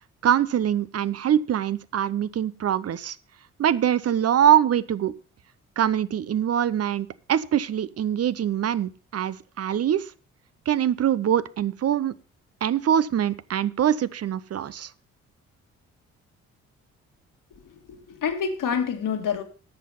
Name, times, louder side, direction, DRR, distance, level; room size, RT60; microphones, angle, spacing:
voice 1, 0.2-3.2 3.6-5.1 5.8-10.1 10.7-12.1 12.6-14.9, right 10 dB, 40° right, 0.7 m, -23 dB
voice 2, 17.6-19.4, left 7 dB, 55° left, 2.0 m, -28 dB
10.5 x 7.4 x 5.4 m
hypercardioid pair, 45°, 37 cm